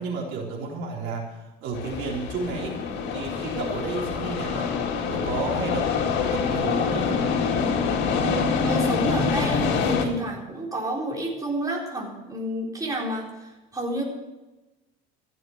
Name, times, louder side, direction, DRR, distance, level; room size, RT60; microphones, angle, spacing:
voice 1, 0.0-2.8 3.1-4.7 5.1-5.9 6.2-7.3, right 4 dB, 70° right, -1 dB, 3.9 m, -32 dB
sound 1, 1.7-10.0, left 5 dB, 65° left, 2.4 m, -25 dB
voice 2, 8.1-14.0, right 1 dB, 15° right, -2 dB, 4.1 m, -30 dB
15.0 x 7.6 x 8.8 m, 1.1 s
supercardioid pair, 105°, 20 cm